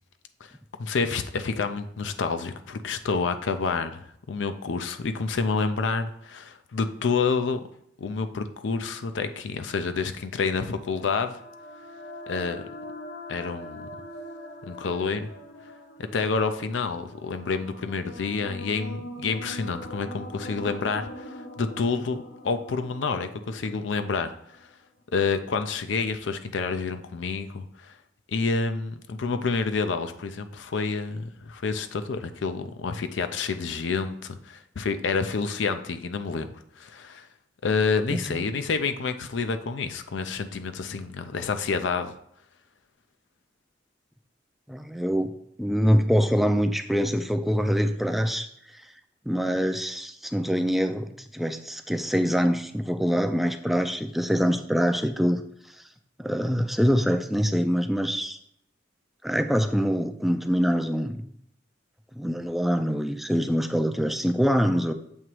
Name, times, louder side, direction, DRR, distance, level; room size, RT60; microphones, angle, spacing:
voice 1, 0.8-7.6 8.0-11.4 12.3-12.6 13.3-13.9 14.6-15.3 16.1-24.6 25.1-27.9 28.3-37.3 37.6-42.1, left 4 dB, 80° left, 8 dB, 0.5 m, -28 dB
sound 1, 11.0-24.6, left 1 dB, 60° left, 0.9 m, -42 dB
voice 2, 38.1-38.4 44.7-45.3 45.6-48.5 48.7-48.8 49.3-55.4 55.8-55.9 56.2-58.4 59.2-61.2 62.1-64.9, equal, ahead, 7 dB, 0.4 m, -24 dB
7.3 x 3.0 x 4.6 m, 0.72 s
head